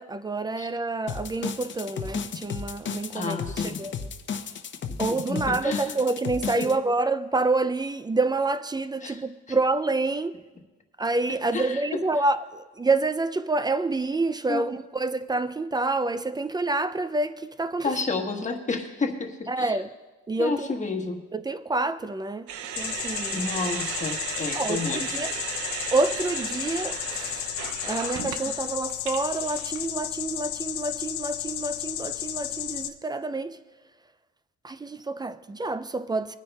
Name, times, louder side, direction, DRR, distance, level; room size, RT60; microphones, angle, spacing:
voice 1, 0.0-3.4 3.6-3.9 5.0-10.3 11.0-17.9 19.5-19.9 20.3-20.7 21.3-22.4 22.8-23.5 24.5-25.3 25.9-27.4 27.8-33.6 34.6-36.4, right 3 dB, 15° right, 0.3 m, -27 dB
sound 1, 1.1-6.7, left 6 dB, 40° left, 0.7 m, -33 dB
voice 2, 3.1-3.8 5.3-6.0 6.5-6.8 9.0-9.6 11.5-12.3 14.5-14.7 17.8-19.8 20.4-21.2 23.3-25.5 28.2-28.4, left 4 dB, 25° left, 1.3 m, -31 dB
sound 2, 22.5-29.9, right 9 dB, 90° right, 0.6 m, -35 dB
sound 3, 22.8-32.9, left 12 dB, 85° left, 0.7 m, -33 dB
22.0 x 9.6 x 2.3 m
cardioid pair, 110°, 29 cm